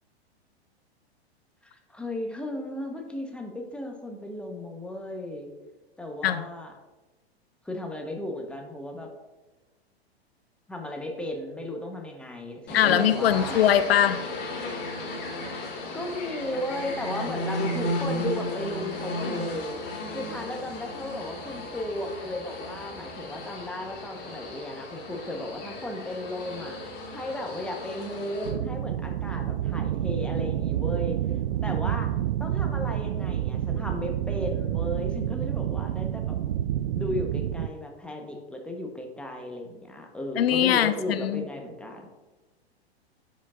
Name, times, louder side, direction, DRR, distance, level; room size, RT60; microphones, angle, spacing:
voice 1, 1.9-5.5 6.0-6.7 7.6-9.1 10.7-13.6 15.9-19.8 20.1-26.8 27.1-31.2 31.6-32.1 32.4-36.4 37.0-42.1, left 1 dB, 5° left, 2 dB, 1.0 m, -35 dB
voice 2, 12.7-14.2 40.4-41.5, left 10 dB, 65° left, 12 dB, 0.6 m, -22 dB
sound 1, 12.7-28.5, left 1 dB, 35° left, 2.3 m, -35 dB
sound 2, 28.4-37.7, right 11 dB, 70° right, 0.5 m, -28 dB
12.0 x 5.3 x 2.4 m, 1.2 s
hypercardioid pair, 105°, 32 cm